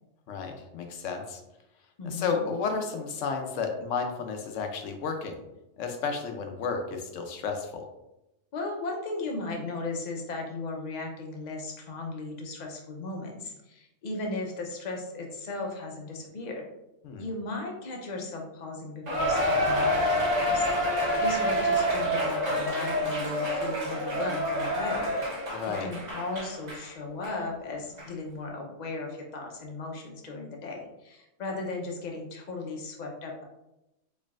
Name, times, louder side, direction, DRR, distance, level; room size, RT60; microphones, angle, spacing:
voice 1, 0.3-1.4 2.0-5.4 5.8-7.9 17.0-17.2 25.5-25.9, left 5 dB, 80° left, 5 dB, 1.0 m, -32 dB
voice 2, 2.0-2.3 8.5-16.6 17.2-25.2 25.6-33.4, left 3 dB, 45° left, 1 dB, 0.7 m, -36 dB
Cheering, 19.1-26.8 27.2-27.3 28.0-28.1, equal, 35° right, 1.0 m, -27 dB
4.4 x 3.2 x 2.4 m, 0.92 s
omnidirectional pair, 1.3 m